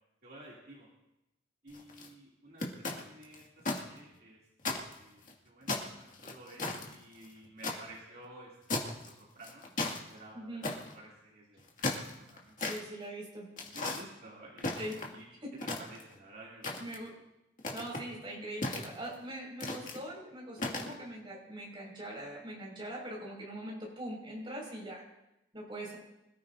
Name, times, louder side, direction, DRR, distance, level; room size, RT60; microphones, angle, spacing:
voice 1, 0.2-0.9 1.6-4.4 4.8-9.7 10.0-12.0 12.3-12.7 13.7-14.8 15.1-15.2 15.8-17.0, right 1 dB, 55° right, -5 dB, 2.9 m, -53 dB
sound 1, 1.7-2.1 2.6-3.8 4.1-4.2 4.6-5.3 5.7-7.8 8.7-9.1 9.4-10.0 10.6-10.9 11.6-12.8 13.6-14.0 14.6-15.2 15.6-16.2 16.6-17.1 17.6-18.0 18.6-19.2 19.6-20.0 20.6-20.9, left 2 dB, 45° left, 2.2 m, -35 dB
voice 2, 12.7-13.5 14.8-14.9 16.8-17.1 17.7-25.0 25.5-26.0, right 1 dB, 25° right, -3 dB, 5.6 m, -42 dB
26.0 x 14.0 x 2.7 m, 0.90 s
head